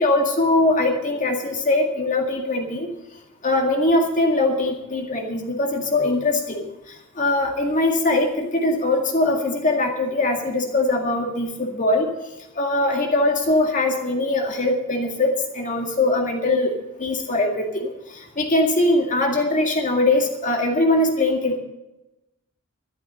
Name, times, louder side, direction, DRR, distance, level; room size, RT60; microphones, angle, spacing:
voice 1, 0.0-2.9 3.4-12.1 12.6-16.7 17.0-21.6, left 2 dB, 35° left, 2 dB, 2.1 m, -21 dB
12.5 x 12.0 x 6.5 m, 0.95 s
head